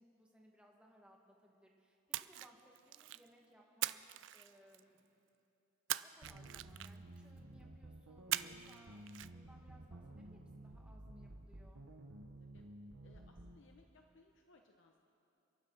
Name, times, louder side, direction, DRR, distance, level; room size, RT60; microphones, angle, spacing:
voice 1, 0.0-5.0 6.0-11.8, equal, 5° right, -1 dB, 1.7 m, -65 dB
Splash splatter, 2.1-3.3 3.8-5.0 5.9-7.2 8.3-8.8 9.1-9.3, right 14 dB, 60° right, 0.3 m, -41 dB
sound 1, 6.2-13.6, right 1 dB, 80° right, 1.0 m, -53 dB
voice 2, 13.0-15.0, left 2 dB, 65° left, 3 dB, 0.9 m, -66 dB
29.0 x 11.0 x 4.0 m, 2.7 s
head